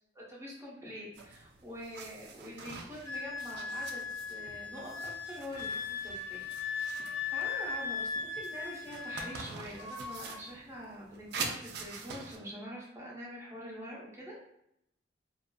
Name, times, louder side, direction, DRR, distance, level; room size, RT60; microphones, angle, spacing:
voice 1, 0.1-6.4 6.7-14.4, equal, 15° right, -5 dB, 0.7 m, -45 dB
sound 1, 1.1-12.4, right 4 dB, 60° right, 0.3 m, -45 dB
Wind instrument woodwind instrument, 3.1-9.5 9.8-10.4, left 5 dB, 70° left, 0.7 m, -38 dB
2.4 x 2.3 x 2.2 m, 0.78 s
head